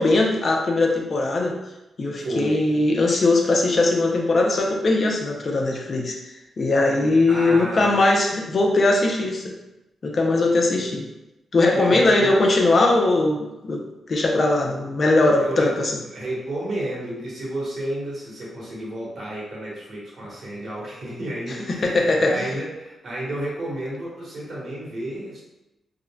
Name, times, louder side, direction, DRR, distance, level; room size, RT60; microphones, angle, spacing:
voice 1, 0.0-1.6 2.0-9.5 10.0-11.1 11.5-13.8 14.1-15.9 21.7-22.5, left 2 dB, 55° left, 1 dB, 0.5 m, -20 dB
voice 2, 2.2-2.6 7.3-8.1 11.7-12.4 15.4-15.7 16.0-25.4, right 1 dB, 60° right, -5 dB, 1.2 m, -31 dB
3.6 x 2.1 x 2.2 m, 0.97 s
supercardioid pair, 55°, 0 cm